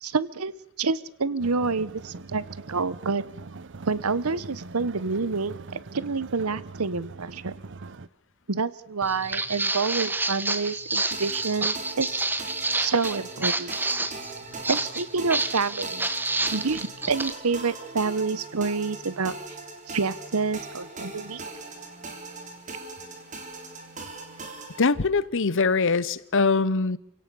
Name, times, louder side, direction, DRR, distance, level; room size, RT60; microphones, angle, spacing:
voice 1, 0.0-0.5 0.8-2.4 2.7-3.2 3.9-5.6 5.9-7.5 8.5-12.2 12.8-13.7 14.7-16.1 16.5-19.4 19.9-21.4, right 4 dB, 85° right, 18 dB, 1.0 m, -28 dB
sound 1, 1.4-8.1, right 3 dB, 60° right, 0.8 m, -42 dB
Walk footsteps, 9.0-17.3, right 2 dB, 10° right, 1.1 m, -29 dB
sound 2, 11.1-24.8, right 3 dB, 35° right, 3.7 m, -40 dB
voice 2, 24.8-27.0, left 4 dB, 60° left, 18 dB, 0.9 m, -22 dB
28.0 x 17.0 x 7.0 m, 0.77 s
head